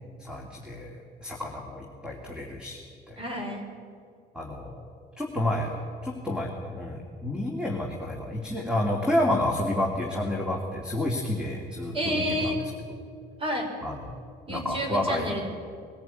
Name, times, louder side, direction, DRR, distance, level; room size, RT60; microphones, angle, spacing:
voice 1, 0.2-2.8 3.1-3.2 4.3-4.8 5.2-5.7 6.0-12.5 13.8-14.1 14.5-15.3, left 1 dB, 5° right, 0 dB, 2.8 m, -30 dB
voice 2, 3.2-3.7 11.9-12.6 13.4-13.7 14.5-15.5, equal, 35° right, 2 dB, 5.5 m, -30 dB
22.5 x 14.0 x 9.3 m, 2.3 s
cardioid pair, 110°, 17 cm